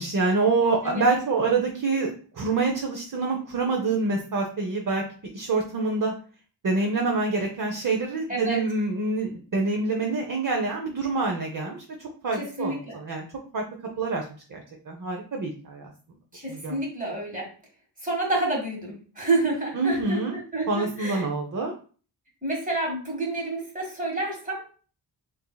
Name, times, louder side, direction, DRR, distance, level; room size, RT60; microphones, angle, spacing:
voice 1, 0.0-5.0 5.3-6.1 6.6-13.2 13.5-13.6 14.0-14.2 14.5-15.9 16.5-16.8 19.7-20.4 20.7-21.7, right 3 dB, 45° right, 1 dB, 0.7 m, -26 dB
voice 2, 8.3-8.6 12.4-13.0 16.3-17.5 18.0-21.2 22.4-24.6, right 2 dB, 20° right, -1 dB, 1.7 m, -29 dB
6.9 x 2.8 x 2.3 m, 0.40 s
wide cardioid pair, 125°, 45 cm